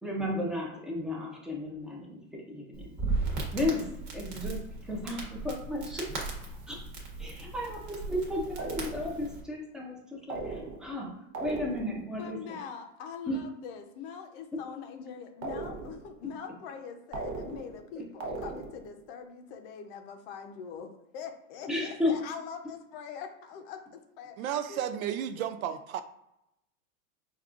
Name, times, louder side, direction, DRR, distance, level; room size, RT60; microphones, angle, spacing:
voice 1, 0.0-3.0 3.5-6.1 6.7-6.8 7.2-12.4 13.3-13.4 14.5-14.6 18.0-18.1 21.7-22.2, left 1 dB, ahead, -2 dB, 0.5 m, -34 dB
Crackle, 2.7-9.4, right 3 dB, 40° right, 1.2 m, -37 dB
sound 1, 8.6-9.3 10.3-11.0 11.3-12.1 15.4-16.1 17.1-17.9 18.2-18.9, right 3 dB, 70° right, 0.9 m, -38 dB
voice 2, 12.2-24.8, left 7 dB, 45° left, 5 dB, 0.6 m, -43 dB
voice 3, 24.4-26.0, right 10 dB, 90° right, 10 dB, 0.5 m, -33 dB
5.2 x 2.4 x 2.4 m, 0.84 s
supercardioid pair, 135°, 41 cm